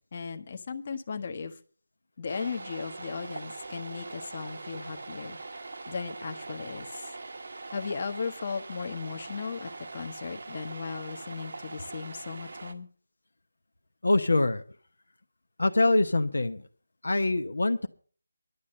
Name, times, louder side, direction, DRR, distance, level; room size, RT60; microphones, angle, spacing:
voice 1, 0.0-1.6 2.2-5.4 5.9-7.1 7.7-12.9, left 5 dB, 40° left, 7 dB, 1.2 m, -36 dB
sound 1, 2.3-12.7, right 3 dB, 60° right, 1.5 m, -42 dB
voice 2, 14.0-14.6 15.6-16.6 17.0-17.9, left 2 dB, 75° left, 8 dB, 0.9 m, -24 dB
11.5 x 8.5 x 6.5 m, 0.42 s
figure-of-eight pair, 160°, 0 cm